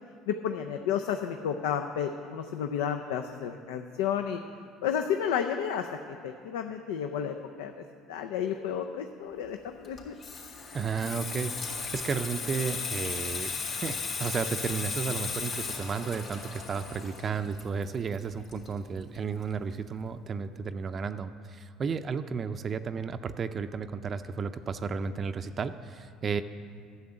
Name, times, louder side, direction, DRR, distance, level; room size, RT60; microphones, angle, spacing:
voice 1, 0.3-4.4 4.8-7.7 8.1-10.1, left 8 dB, 80° left, 5 dB, 0.5 m, -31 dB
Water tap faucet / Sink (filling or washing), 9.8-19.2 19.4-19.7, left 5 dB, 45° left, 3.0 m, -36 dB
voice 2, 10.7-26.4, right 5 dB, 40° right, 9 dB, 0.5 m, -33 dB
10.5 x 7.0 x 8.7 m, 2.4 s
hypercardioid pair, 75°, 0 cm